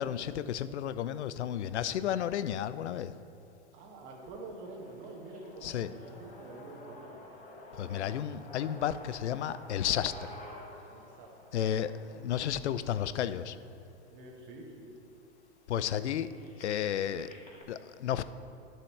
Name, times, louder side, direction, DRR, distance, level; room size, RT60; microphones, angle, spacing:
voice 1, 0.0-3.1 5.6-5.9 7.8-10.4 11.5-13.6 15.7-16.3 16.6-17.3 17.7-18.2, left 10 dB, 80° left, 14 dB, 0.5 m, -32 dB
voice 2, 3.7-7.3 10.9-11.3 14.0-15.0, right 2 dB, 35° right, 0 dB, 1.4 m, -47 dB
sound 1, 4.2-14.1 14.8-14.9 15.2-17.6, left 1 dB, 25° left, 1.4 m, -51 dB
11.5 x 6.8 x 3.2 m, 2.7 s
hypercardioid pair, 125°, 34 cm